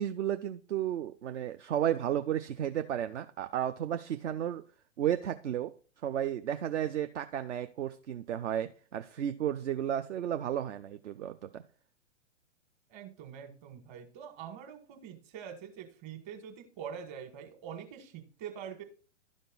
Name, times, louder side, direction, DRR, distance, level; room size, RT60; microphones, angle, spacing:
voice 1, 0.0-4.6 5.0-5.7 6.0-11.6, right 10 dB, 65° right, 9 dB, 0.6 m, -33 dB
voice 2, 12.9-18.8, right 8 dB, 40° right, 6 dB, 1.8 m, -44 dB
11.5 x 5.2 x 3.9 m, 0.39 s
figure-of-eight pair, 110°, 39 cm